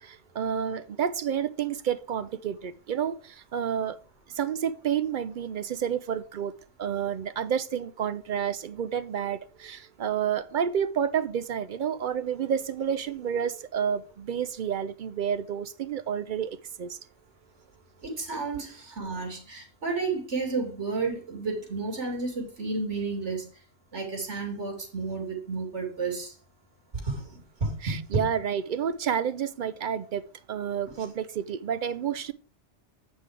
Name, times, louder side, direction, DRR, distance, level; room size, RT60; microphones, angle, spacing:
voice 1, 0.0-4.0 4.3-6.5 6.8-17.0 27.8-32.3, right 8 dB, 60° right, 0.5 m, -30 dB
voice 2, 18.0-23.5 23.9-26.3 27.0-28.0, right 4 dB, 90° right, 2.9 m, -32 dB
8.1 x 5.6 x 4.7 m
omnidirectional pair, 1.2 m